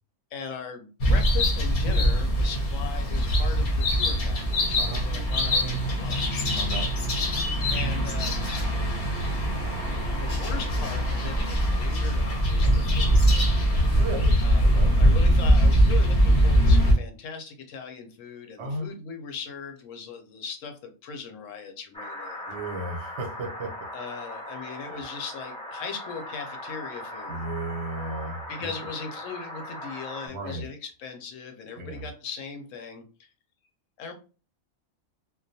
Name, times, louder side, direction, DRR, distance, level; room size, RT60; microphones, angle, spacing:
voice 1, 0.3-6.5 7.7-8.4 10.2-13.2 14.4-22.5 23.9-27.4 28.5-33.3 34.0-34.1, left 5 dB, 75° left, 5 dB, 0.9 m, -39 dB
sound 1, 1.0-16.9, equal, 50° left, 0.7 m, -22 dB
voice 2, 6.6-6.9 12.6-12.8 13.9-15.0 18.6-18.9 22.5-23.7 24.9-25.0 27.3-28.7 30.2-30.7 31.8-32.1, right 2 dB, 65° right, 3 dB, 0.8 m, -34 dB
sound 2, 21.9-30.3, left 1 dB, 5° left, 0.4 m, -39 dB
2.3 x 2.2 x 2.6 m, 0.35 s
omnidirectional pair, 1.4 m